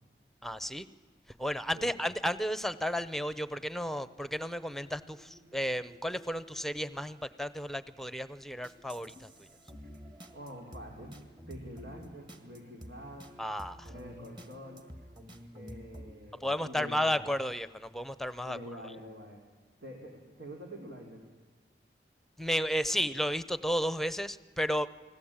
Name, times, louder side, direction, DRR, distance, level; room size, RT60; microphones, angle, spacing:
voice 1, 0.4-0.9 1.4-9.5 13.4-13.9 16.4-18.6 22.4-24.9, equal, ahead, 15 dB, 0.7 m, -33 dB
sound 1, 2.8-18.4, right 1 dB, 55° right, 3.0 m, -62 dB
sound 2, 8.6-13.3 13.6-16.1, equal, 25° right, 2.0 m, -49 dB
voice 2, 10.3-11.2 11.5-13.3 13.9-14.9 15.5-17.3 18.4-19.4 19.8-21.2, equal, 85° right, 1 dB, 3.8 m, -46 dB
29.5 x 20.5 x 8.9 m, 1.4 s
head